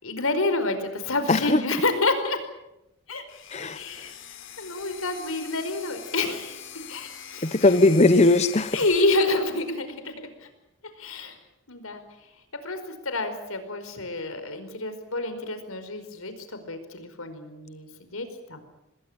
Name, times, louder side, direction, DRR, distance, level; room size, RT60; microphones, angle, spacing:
voice 1, 0.0-2.4 3.1-3.2 3.7-4.2 4.6-6.6 6.9-7.7 8.7-10.5 11.0-11.4 11.7-12.0 12.6-18.6, left 2 dB, 85° left, 9 dB, 4.9 m, -28 dB
voice 2, 1.3-1.6 3.5-3.8 7.4-8.8, left 2 dB, 30° left, 11 dB, 0.9 m, -19 dB
sound 1, 3.3-9.0, left 9 dB, 65° left, 3.4 m, -42 dB
26.0 x 20.5 x 8.8 m, 0.88 s
head